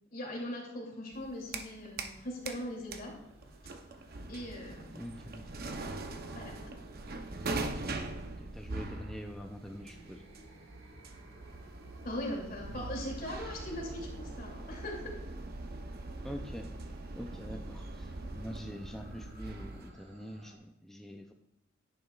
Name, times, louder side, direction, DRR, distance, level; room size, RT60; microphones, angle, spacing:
voice 1, 0.1-3.1 4.3-4.9 6.3-6.8 12.0-15.1, left 1 dB, 50° left, -1 dB, 2.8 m, -40 dB
sound 1, 1.1-2.2 2.5-19.9, right 2 dB, 55° right, 0.7 m, -42 dB
sound 2, 2.3-20.6, right 1 dB, 70° right, 1.9 m, -57 dB
voice 2, 4.9-5.4 8.2-10.2 12.7-12.9 16.2-16.7 17.2-21.3, equal, ahead, 2 dB, 0.5 m, -45 dB
10.5 x 9.5 x 2.4 m, 0.84 s
head